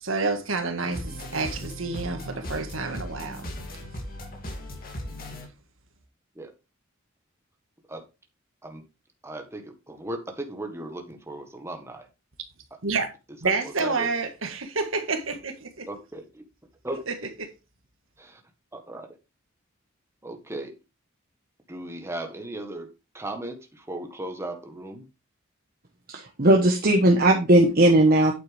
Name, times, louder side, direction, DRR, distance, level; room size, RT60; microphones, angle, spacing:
voice 1, 0.0-3.4 12.8-13.1 13.4-15.9 17.1-17.2, right 4 dB, 80° right, 1.8 m, -28 dB
sound 1, 0.9-5.4, equal, 45° left, 2.7 m, -37 dB
voice 2, 9.2-12.1 12.9-13.0 13.6-14.1 15.9-16.4 16.8-17.0 18.2-18.4 18.7-19.2 20.2-20.7 21.7-25.1, right 1 dB, 15° right, 1.5 m, -37 dB
voice 3, 26.1-28.3, right 1 dB, 45° right, 1.3 m, -18 dB
9.2 x 7.5 x 3.5 m
head